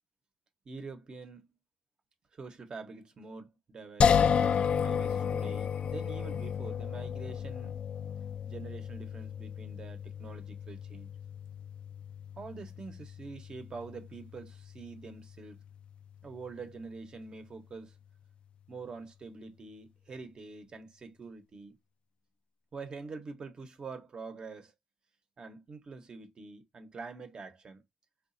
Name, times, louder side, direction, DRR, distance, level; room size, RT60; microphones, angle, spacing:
voice 1, 0.7-1.4 2.4-7.7 8.4-11.1 12.4-15.6 16.2-17.9 18.7-21.8 22.7-24.7 25.4-27.8, right 4 dB, 45° right, 0.9 m, -45 dB
sound 1, 4.0-17.1, left 7 dB, 60° left, 0.3 m, -33 dB
4.7 x 2.5 x 2.6 m
cardioid pair, 110°, 2 cm